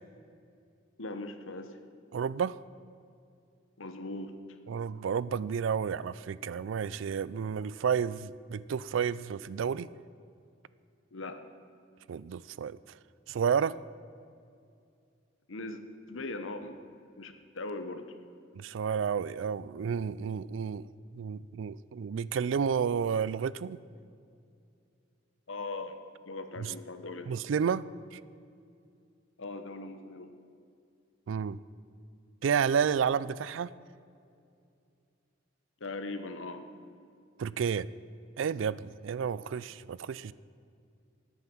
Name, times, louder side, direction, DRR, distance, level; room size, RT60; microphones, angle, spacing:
voice 1, 1.0-1.8 3.8-4.4 11.1-11.5 15.5-15.8 16.1-16.8 17.2-18.0 25.5-26.0 26.3-27.3 29.4-30.3 35.8-36.6, left 2 dB, 80° left, 8 dB, 1.0 m, -39 dB
voice 2, 2.1-2.6 4.7-9.9 12.1-12.8 13.3-13.8 18.6-20.9 21.1-23.8 26.6-26.7 27.3-28.2 31.3-31.6 32.4-33.7 37.4-37.9 38.4-40.3, right 7 dB, 70° right, 19 dB, 0.3 m, -31 dB
13.5 x 9.3 x 6.1 m, 2.4 s
head